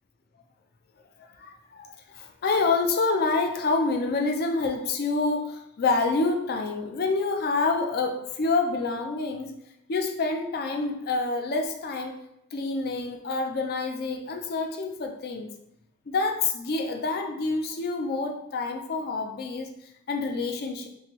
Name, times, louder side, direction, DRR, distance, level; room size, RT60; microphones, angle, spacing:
voice 1, 2.1-9.5 9.9-12.2 12.5-15.5 16.1-19.7 20.1-20.9, left 3 dB, 50° left, 4 dB, 0.4 m, -27 dB
3.3 x 3.1 x 3.0 m, 0.79 s
head